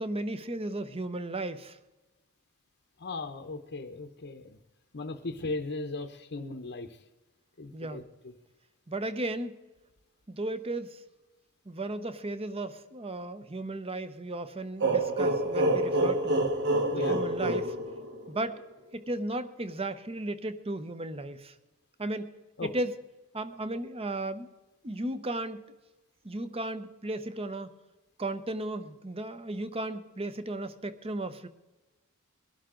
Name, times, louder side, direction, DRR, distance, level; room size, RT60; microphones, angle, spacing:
voice 1, 0.0-1.8 7.7-8.1 8.9-9.5 10.3-11.0 11.7-16.4 16.9-17.7 18.3-18.6 18.9-21.5 22.0-22.3 22.6-22.9 23.3-24.5 24.8-25.6 26.2-27.7 28.2-31.5, right 2 dB, 25° right, 11 dB, 0.9 m, -35 dB
voice 2, 3.0-4.6 4.9-6.9 7.6-8.0 16.9-17.2 22.6-22.7, left 3 dB, 50° left, 6 dB, 0.9 m, -37 dB
sound 1, 14.8-18.5, right 1 dB, 55° right, 1.6 m, -27 dB
22.5 x 11.5 x 3.8 m, 1.1 s
head